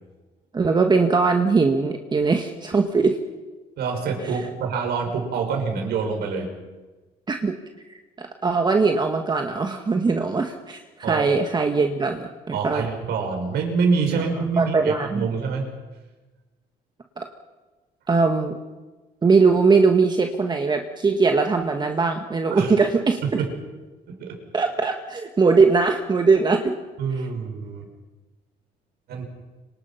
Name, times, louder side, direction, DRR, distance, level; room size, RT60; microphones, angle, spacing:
voice 1, 0.5-3.2 7.3-7.6 7.9-10.8 11.1-12.8 14.6-15.3 17.2-17.3 18.1-18.5 19.2-23.2 24.5-26.8, right 4 dB, 25° right, 4 dB, 1.7 m, -20 dB
voice 2, 3.8-6.5 11.0-11.3 12.5-15.7 22.5-22.7 23.4-23.5 24.1-24.4 27.0-27.9 29.1-29.2, right 5 dB, 75° right, 3 dB, 6.1 m, -26 dB
26.5 x 24.5 x 5.9 m, 1.2 s
cardioid pair, 110°, 17 cm